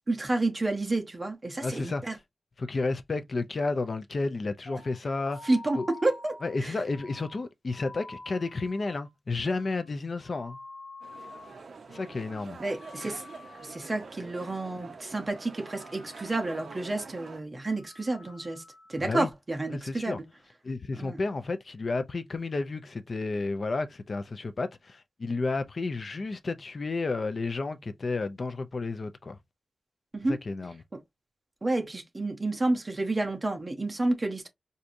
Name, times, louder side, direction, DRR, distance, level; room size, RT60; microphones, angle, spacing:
voice 1, 0.1-2.2 5.4-6.3 6.6-6.7 12.6-13.2 13.6-18.6 18.9-20.3 20.9-21.2 30.1-30.4 31.6-34.5, right 2 dB, 25° right, 0.7 m, -30 dB
voice 2, 1.6-2.2 2.6-5.4 5.8-5.9 6.4-10.6 11.9-12.6 19.0-19.3 19.7-20.2 20.6-29.4 30.3-30.8, left 3 dB, 40° left, 0.4 m, -32 dB
sound 1, 4.7-11.6 11.9-12.4 12.7-14.1 14.4-14.9 15.2-16.6 17.0-17.3 17.7-19.0, left 3 dB, 65° left, 1.2 m, -49 dB
sound 2, 11.0-17.4, right 4 dB, 60° right, 0.5 m, -46 dB
4.5 x 2.6 x 2.5 m
wide cardioid pair, 175°, 0 cm